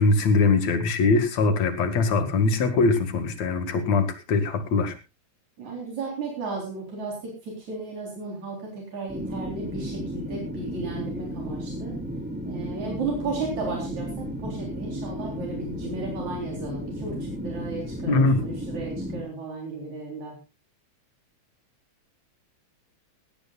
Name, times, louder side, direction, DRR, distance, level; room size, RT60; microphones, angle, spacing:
voice 1, 0.0-4.9 18.1-18.4, left 3 dB, 65° left, 9 dB, 3.2 m, -22 dB
voice 2, 5.6-11.9 12.5-20.4, right 3 dB, 70° right, -1 dB, 5.2 m, -34 dB
sound 1, 9.1-19.2, equal, 5° right, 3.6 m, -34 dB
17.5 x 17.5 x 2.4 m, 0.28 s
omnidirectional pair, 3.3 m